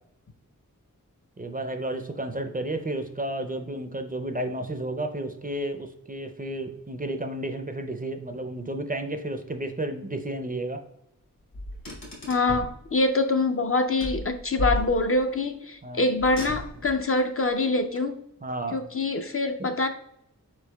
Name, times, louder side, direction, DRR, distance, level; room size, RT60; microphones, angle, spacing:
voice 1, 1.4-10.8 15.8-16.0 18.4-18.8 19.6-19.7, right 1 dB, 25° right, 0.4 m, -32 dB
Car, 11.5-12.8 14.0-15.3 16.2-17.0, equal, 75° left, 1.6 m, -33 dB
voice 2, 12.3-18.2 18.7-19.9, left 2 dB, 40° left, 0.4 m, -25 dB
4.6 x 4.5 x 2.2 m
wide cardioid pair, 55°, 34 cm